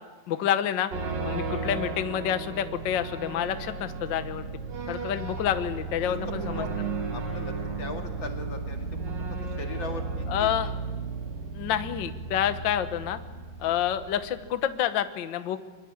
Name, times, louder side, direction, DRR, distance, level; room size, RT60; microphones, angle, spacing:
voice 1, 0.3-0.9 1.2-4.5 4.9-6.6 10.3-10.7 11.5-13.2 13.6-15.6, left 10 dB, 75° left, 10 dB, 1.0 m, -28 dB
sound 1, 0.9-14.6, right 4 dB, 90° right, 4.8 m, -34 dB
voice 2, 6.0-6.7 7.1-9.2 9.6-10.7 13.6-13.8, left 2 dB, 40° left, 3 dB, 2.7 m, -40 dB
24.0 x 22.5 x 8.8 m, 1.3 s
omnidirectional pair, 3.8 m